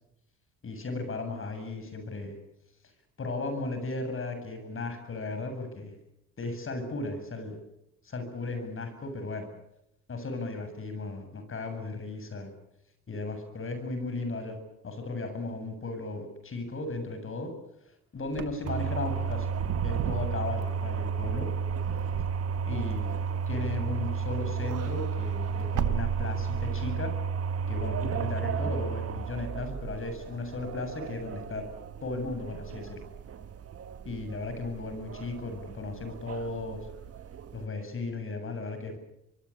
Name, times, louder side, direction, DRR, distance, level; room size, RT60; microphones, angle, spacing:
voice 1, 0.6-2.3 3.2-6.0 6.4-7.6 8.0-9.5 10.1-12.5 13.1-14.6 14.8-17.5 18.1-19.6 19.8-21.5 22.6-23.1 23.5-27.1 27.7-31.6 32.0-33.0 34.0-36.8 37.5-39.0, left 3 dB, 45° left, 8 dB, 7.7 m, -35 dB
Wind / Car, 18.3-24.1 24.4-26.9, right 13 dB, 85° right, 1.2 m, -36 dB
sound 1, 18.6-37.7, right 6 dB, 50° right, 1.6 m, -33 dB
25.0 x 23.5 x 8.7 m, 0.84 s
cardioid pair, 90°, 30 cm